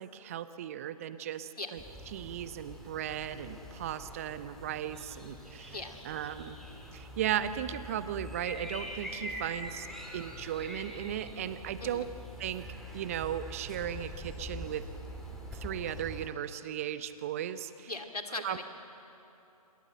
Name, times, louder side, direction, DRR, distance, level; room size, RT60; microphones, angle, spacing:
voice 1, 0.0-1.8 2.1-5.8 6.0-6.6 6.9-9.9 10.1-12.0 12.4-12.6 12.9-14.9 15.5-17.9 18.4-18.6, right 10 dB, 25° right, 13 dB, 0.7 m, -36 dB
sound 1, 1.8-16.3, equal, ahead, 1.8 m, -44 dB
voice 2, 17.9-18.6, left 3 dB, 75° left, 5 dB, 2.6 m, -39 dB
26.5 x 22.5 x 7.9 m, 2.9 s
figure-of-eight pair, 145°, 20 cm